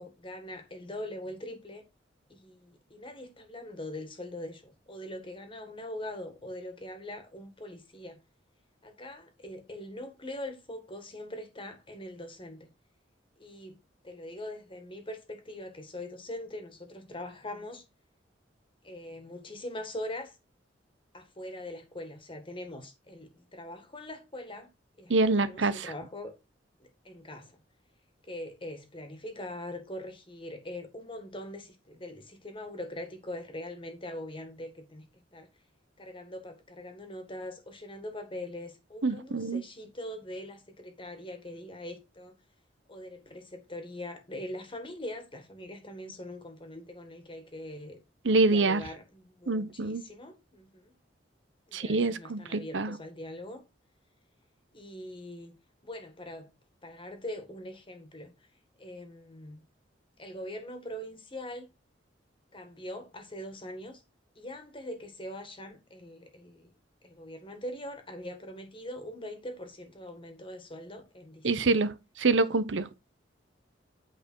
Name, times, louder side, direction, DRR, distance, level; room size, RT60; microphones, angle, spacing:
voice 1, 0.0-1.8 2.3-8.2 8.8-12.7 13.4-13.8 14.0-17.8 18.8-20.4 21.1-24.7 25.0-26.3 26.8-27.6 28.2-35.5 36.0-42.4 42.9-48.0 48.5-50.9 51.7-53.6 54.7-55.5 55.8-56.5 56.8-58.3 58.8-59.6 60.2-61.7 62.5-64.0 64.4-66.7 67.0-71.7, left 1 dB, 30° left, 1.8 m, -42 dB
voice 2, 25.1-25.9 39.0-39.6 48.2-48.8 49.5-50.0 51.7-53.0 71.4-72.9, right 3 dB, 85° right, 0.8 m, -26 dB
8.8 x 5.0 x 4.6 m
head